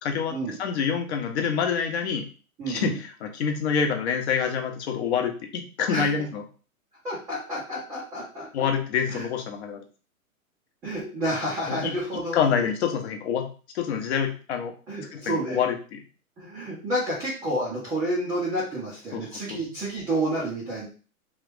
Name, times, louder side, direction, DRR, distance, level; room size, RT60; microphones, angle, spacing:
voice 1, 0.0-2.3 2.7-6.4 8.5-9.8 11.7-11.9 12.3-13.5 13.7-14.7 15.1-16.0 19.1-19.6, left 7 dB, 50° left, 5 dB, 0.8 m, -27 dB
voice 2, 2.6-3.0 5.9-6.1 7.0-8.5 9.1-9.3 10.8-12.6 14.9-15.6 16.4-20.9, right 1 dB, 5° right, -9 dB, 0.4 m, -30 dB
3.1 x 2.4 x 3.3 m, 0.37 s
hypercardioid pair, 120°, 44 cm